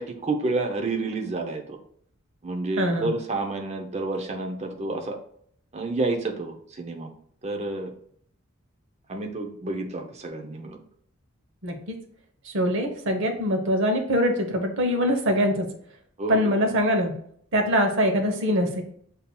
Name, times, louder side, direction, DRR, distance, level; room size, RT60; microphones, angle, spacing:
voice 1, 0.0-1.8 2.4-5.2 5.7-7.1 7.4-7.9 9.1-10.8 16.2-16.5, right 3 dB, 35° right, 3 dB, 0.6 m, -29 dB
voice 2, 2.8-3.1 11.6-12.0 12.4-15.7 16.3-17.2 17.5-18.8, equal, 65° right, 4 dB, 0.8 m, -23 dB
6.9 x 2.7 x 2.2 m, 0.64 s
head